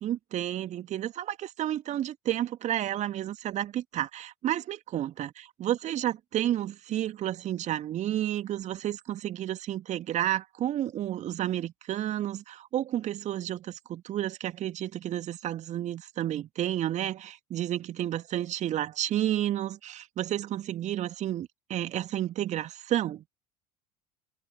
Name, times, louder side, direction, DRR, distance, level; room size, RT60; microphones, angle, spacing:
voice 1, 0.0-5.3 5.6-23.2, right 12 dB, 40° right, 2.2 m, -31 dB
figure-of-eight pair, 70°, 18 cm